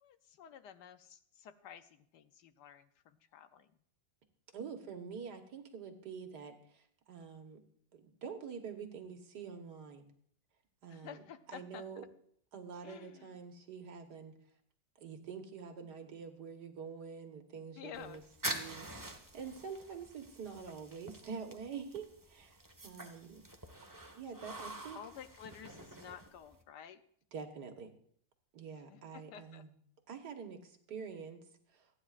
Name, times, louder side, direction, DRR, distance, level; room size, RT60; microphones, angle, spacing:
voice 1, 0.0-3.7 10.9-11.8 12.8-13.4 17.8-18.3 24.9-27.0 28.7-29.6, left 9 dB, 75° left, 11 dB, 1.2 m, -52 dB
voice 2, 4.5-6.8 7.1-7.6 7.9-10.1 10.8-11.2 11.5-12.0 12.5-14.3 15.0-18.2 18.5-18.9 19.3-23.4 24.1-25.0 27.3-27.9 28.5-29.7 30.1-31.4 31.7-31.8, right 6 dB, 65° right, 5 dB, 1.8 m, -46 dB
sound 1, 17.9-26.6, right 1 dB, 15° right, 0.9 m, -46 dB
27.5 x 9.6 x 2.4 m, 0.63 s
omnidirectional pair, 1.9 m